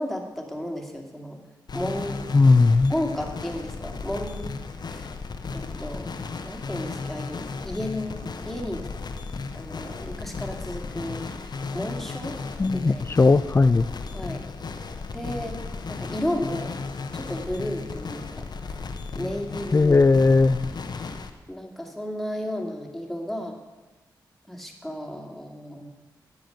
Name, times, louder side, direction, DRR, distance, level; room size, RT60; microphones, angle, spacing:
voice 1, 0.0-1.4 1.7-2.4 2.9-4.5 4.8-5.1 5.5-6.2 6.4-8.9 9.5-12.4 12.7-13.1 14.1-14.4 15.1-15.6 15.9-16.7 17.1-18.9 19.1-19.9 21.5-23.6 24.5-25.9, left 1 dB, 5° left, 1 dB, 2.3 m, -33 dB
sound 1, 1.7-21.3, left 4 dB, 60° left, 0.9 m, -35 dB
voice 2, 2.3-2.9 12.6-13.9 19.7-20.7, left 3 dB, 30° left, 16 dB, 0.4 m, -18 dB
10.5 x 7.3 x 7.0 m, 1.2 s
supercardioid pair, 45°, 8 cm